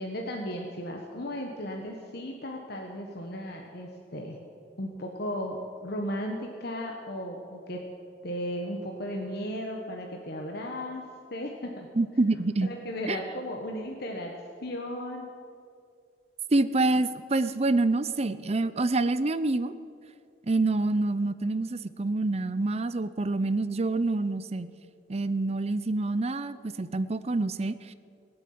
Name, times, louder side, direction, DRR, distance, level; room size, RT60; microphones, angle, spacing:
voice 1, 0.0-4.4 4.8-7.8 8.2-11.1 11.3-11.9 12.6-14.3 14.6-15.3, equal, 60° left, 1 dB, 1.3 m, -35 dB
voice 2, 12.0-12.7 13.1-13.2 16.5-19.7 20.5-24.7 25.1-27.9, right 2 dB, 35° right, 13 dB, 0.6 m, -27 dB
18.5 x 8.0 x 9.6 m, 2.3 s
head